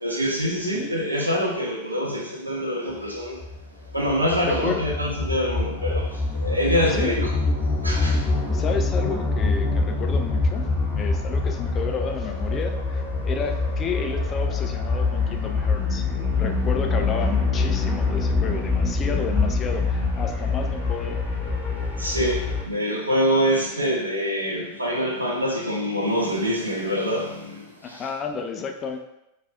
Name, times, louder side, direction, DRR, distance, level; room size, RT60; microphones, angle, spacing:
voice 1, 0.0-3.4 3.9-7.3 7.8-8.3 22.0-28.1, equal, 85° right, -1 dB, 0.6 m, -25 dB
voice 2, 0.6-0.9 4.4-4.9 6.8-7.2 8.2-10.7 11.0-16.0 16.3-21.2 27.8-29.0, left 5 dB, 25° left, 4 dB, 0.4 m, -32 dB
sound 1, 3.4-22.6, left 3 dB, 10° left, 1.0 m, -25 dB
4.6 x 2.4 x 2.3 m, 0.87 s
figure-of-eight pair, 90°, 0 cm